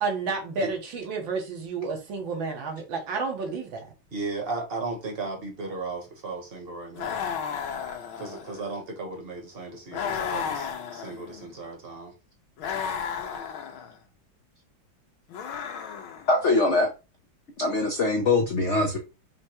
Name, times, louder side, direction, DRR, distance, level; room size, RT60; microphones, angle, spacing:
voice 1, 0.0-3.9, right 4 dB, 70° right, 1.9 m, -31 dB
voice 2, 4.1-7.1 8.2-12.1, right 3 dB, 35° right, 1.1 m, -35 dB
sound 1, 7.0-8.7 9.9-11.5 12.6-13.9 15.3-16.4, left 7 dB, 85° left, 1.7 m, -33 dB
voice 3, 16.3-16.9 17.6-19.0, left 2 dB, 65° left, 0.7 m, -22 dB
5.1 x 2.2 x 4.4 m
omnidirectional pair, 2.2 m